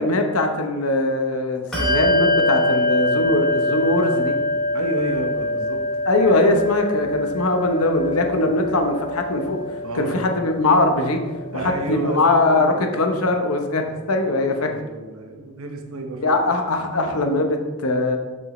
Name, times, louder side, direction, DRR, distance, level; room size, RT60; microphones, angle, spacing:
voice 1, 0.0-4.4 6.1-9.6 9.9-11.2 11.5-13.8 14.1-14.7 16.2-18.2, left 2 dB, 90° left, 4 dB, 0.9 m, -21 dB
Bell, 1.7-11.7, left 1 dB, 5° left, 1.9 m, -24 dB
voice 2, 4.7-5.8 8.4-8.6 9.8-10.2 11.5-13.2 13.8-16.4, right 2 dB, 80° right, 3 dB, 1.0 m, -32 dB
7.2 x 6.0 x 3.1 m, 1.3 s
head